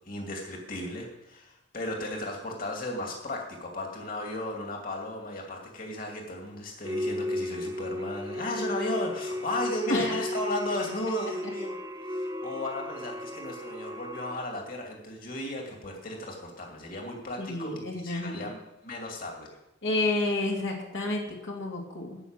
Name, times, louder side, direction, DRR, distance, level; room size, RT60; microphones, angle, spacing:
voice 1, 0.1-11.7 12.2-17.7 18.0-18.6 18.8-19.5, left 1 dB, 50° left, 1 dB, 2.6 m, -35 dB
sound 1, 6.8-14.4, left 1 dB, 20° right, 1.0 m, -35 dB
voice 2, 17.4-18.5 19.8-22.2, left 2 dB, 75° left, -1 dB, 2.4 m, -30 dB
13.5 x 5.9 x 9.0 m, 0.90 s
head